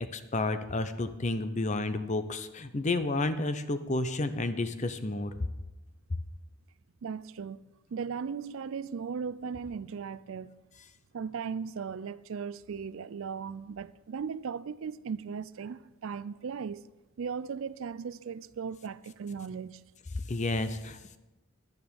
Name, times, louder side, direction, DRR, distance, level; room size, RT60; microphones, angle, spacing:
voice 1, 0.1-5.5 20.3-21.2, left 2 dB, 30° left, 0.6 m, -31 dB
voice 2, 7.0-7.6 7.9-10.6 11.1-16.8 17.2-19.8, right 6 dB, 65° right, 0.4 m, -37 dB
10.5 x 9.8 x 5.3 m
head